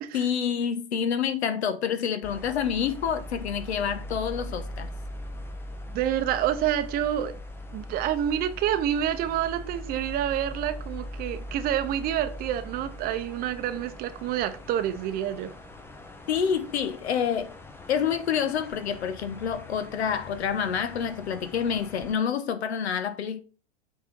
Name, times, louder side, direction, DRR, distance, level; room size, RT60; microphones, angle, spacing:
voice 1, 0.1-4.9 16.3-17.6 17.9-23.4, left 7 dB, 80° left, 1.2 m, -28 dB
sound 1, 2.2-22.1, left 1 dB, 5° left, 0.6 m, -41 dB
voice 2, 5.9-7.3 7.7-15.5, right 11 dB, 30° right, 0.8 m, -28 dB
7.7 x 4.2 x 5.2 m
hypercardioid pair, 140°, 32 cm